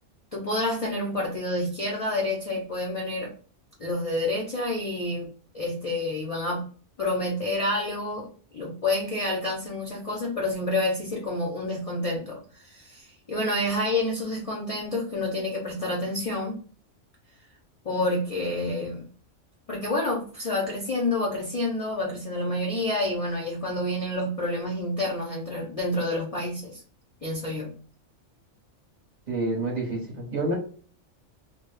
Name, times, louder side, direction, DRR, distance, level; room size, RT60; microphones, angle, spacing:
voice 1, 0.3-3.3 3.8-5.3 5.5-6.7 7.0-8.3 8.5-16.6 17.8-19.1 19.7-26.8 27.2-27.7, left 2 dB, 50° left, -2 dB, 0.4 m, -28 dB
voice 2, 29.3-30.6, right 2 dB, 40° right, -2 dB, 0.8 m, -28 dB
2.2 x 2.0 x 3.1 m, 0.42 s
omnidirectional pair, 1.3 m